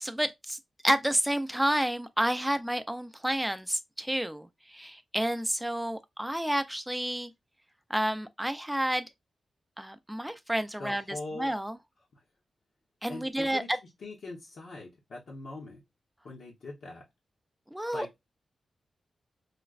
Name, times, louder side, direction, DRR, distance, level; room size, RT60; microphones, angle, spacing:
voice 1, 0.0-0.6 0.8-7.3 7.9-9.1 9.8-11.8 13.0-13.8 17.7-18.1, right 1 dB, 5° right, 0.4 m, -30 dB
voice 2, 10.8-11.5 12.1-12.2 13.1-13.7 14.0-15.8 16.2-17.0 17.9-18.1, left 2 dB, 75° left, 0.8 m, -42 dB
4.9 x 2.1 x 2.3 m
wide cardioid pair, 145°, 0 cm